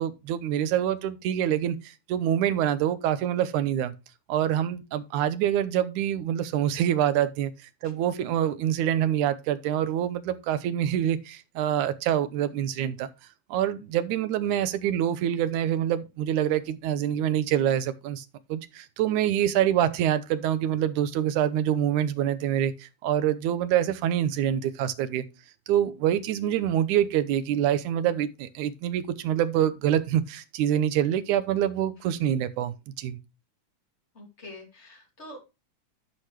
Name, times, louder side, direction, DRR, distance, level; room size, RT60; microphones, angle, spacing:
voice 1, 0.0-1.8 2.1-3.9 4.3-7.5 7.8-13.1 13.5-25.3 25.7-33.2, right 10 dB, 75° right, 2.1 m, -26 dB
voice 2, 34.1-35.4, left 1 dB, 20° left, 2.4 m, -45 dB
12.0 x 5.8 x 3.2 m
omnidirectional pair, 3.6 m